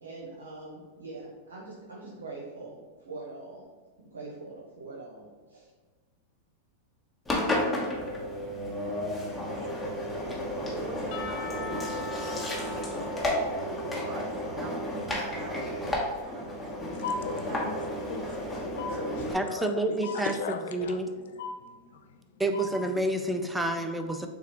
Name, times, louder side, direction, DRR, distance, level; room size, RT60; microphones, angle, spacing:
voice 1, 0.0-3.6 4.0-5.7, right 3 dB, 80° right, 0.9 m, -43 dB
Engine, 7.2-19.3, left 1 dB, 10° left, 1.0 m, -32 dB
voice 2, 10.7-18.0 18.9-19.0, right 2 dB, 45° right, 0.9 m, -45 dB
Percussion / Church bell, 11.1-15.0, left 3 dB, 55° left, 0.9 m, -42 dB
voice 3, 16.9-22.3 22.5-22.9 23.9-24.3, left 5 dB, 70° left, 0.5 m, -38 dB
voice 4, 19.3-20.3 20.7-21.1 22.4-24.3, right 1 dB, 5° right, 0.4 m, -28 dB
6.8 x 2.4 x 2.9 m
hypercardioid pair, 100°, 0 cm